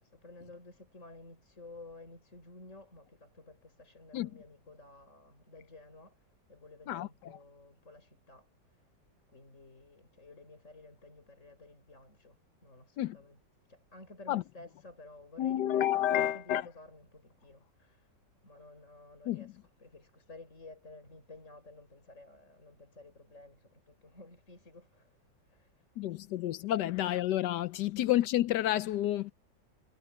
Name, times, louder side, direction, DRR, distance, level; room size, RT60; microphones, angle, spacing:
voice 1, 0.0-8.9 9.3-13.4 13.7-18.1 18.4-25.2 25.5-25.8, left 2 dB, 40° left, 6.2 m, -53 dB
voice 2, 6.9-7.4 13.0-13.2 14.3-14.4 15.4-16.7 19.3-19.5 26.0-29.3, left 13 dB, 70° left, 1.1 m, -30 dB
omnidirectional pair, 2.0 m